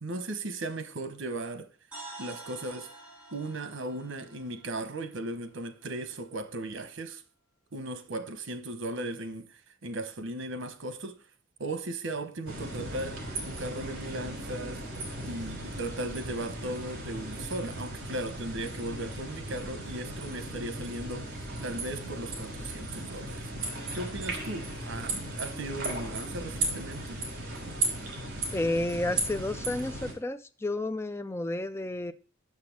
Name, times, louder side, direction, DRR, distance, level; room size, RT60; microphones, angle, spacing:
voice 1, 0.0-1.7 2.2-2.9 3.3-7.2 7.7-9.5 9.8-11.2 11.6-14.9 15.2-21.3 21.6-23.5 23.9-27.2, right 2 dB, 80° right, 1.1 m, -37 dB
sound 1, 1.9-5.9, right 2 dB, 5° right, 4.4 m, -48 dB
sound 2, 12.5-30.1, right 2 dB, 50° right, 3.3 m, -36 dB
voice 2, 28.5-32.1, left 2 dB, 15° left, 0.4 m, -31 dB
6.7 x 6.1 x 5.9 m
head